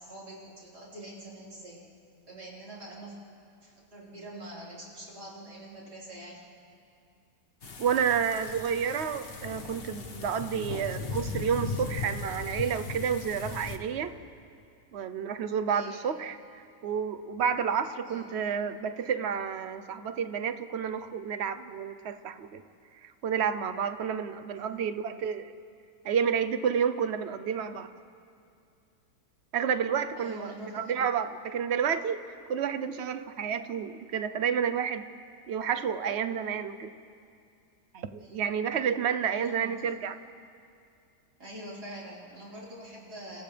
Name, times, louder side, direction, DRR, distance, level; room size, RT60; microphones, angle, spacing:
voice 1, 0.0-1.8 2.3-3.2 3.6-6.4 15.7-16.1 18.0-18.3 24.4-24.7 30.2-30.9 38.2-38.4 39.4-40.0 41.4-43.4, right 1 dB, 90° right, -7 dB, 5.3 m, -45 dB
sound 1, 7.6-13.8, left 4 dB, 40° left, 1.3 m, -37 dB
voice 2, 7.8-14.1 14.9-22.6 23.0-25.5 26.0-27.9 29.5-35.1 35.5-36.9 37.9-40.2, right 7 dB, 50° right, 10 dB, 1.0 m, -30 dB
29.5 x 28.5 x 3.4 m, 2.4 s
omnidirectional pair, 1.7 m